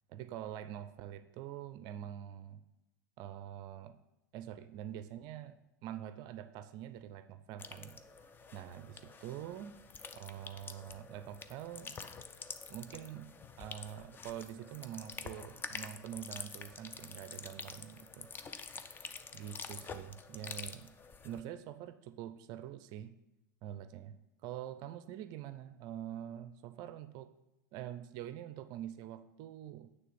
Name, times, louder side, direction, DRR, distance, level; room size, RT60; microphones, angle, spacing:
voice 1, 0.1-2.6 3.2-4.0 4.3-8.0 8.5-9.8 10.2-12.0 12.7-18.3 19.3-20.9 21.2-23.1 23.6-27.3 27.7-29.9, right 11 dB, 45° right, 11 dB, 0.5 m, -45 dB
sound 1, 7.6-21.4, left 5 dB, 20° left, 0.5 m, -48 dB
9.2 x 3.4 x 6.7 m, 0.90 s
figure-of-eight pair, 90°, 10 cm